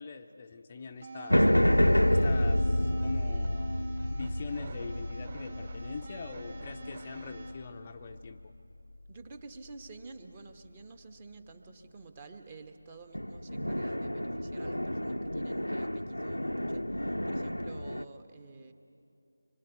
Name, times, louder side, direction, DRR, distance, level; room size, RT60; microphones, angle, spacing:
voice 1, 0.0-1.5 2.1-8.5, left 5 dB, 25° left, 4 dB, 0.7 m, -43 dB
sound 1, 1.0-7.5, right 1 dB, 45° right, 3.6 m, -42 dB
sound 2, 1.3-7.8 13.1-18.0, left 1 dB, 90° left, 0.7 m, -29 dB
voice 2, 9.1-18.7, right 3 dB, 20° right, 7 dB, 1.3 m, -50 dB
26.0 x 24.0 x 8.3 m, 2.7 s
figure-of-eight pair, 165°, 0 cm